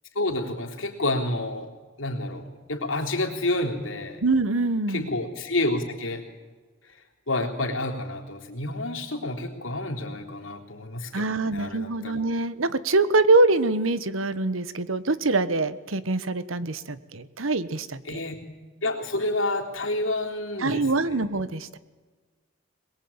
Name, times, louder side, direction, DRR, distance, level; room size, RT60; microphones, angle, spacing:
voice 1, 0.2-1.7 2.0-4.2 4.9-6.2 7.3-12.2 18.0-18.4 18.8-21.3, left 2 dB, 75° left, 2 dB, 3.7 m, -29 dB
voice 2, 4.2-5.1 11.1-18.2 20.6-21.8, right 3 dB, 85° right, 15 dB, 1.2 m, -24 dB
22.0 x 22.0 x 8.8 m, 1.4 s
head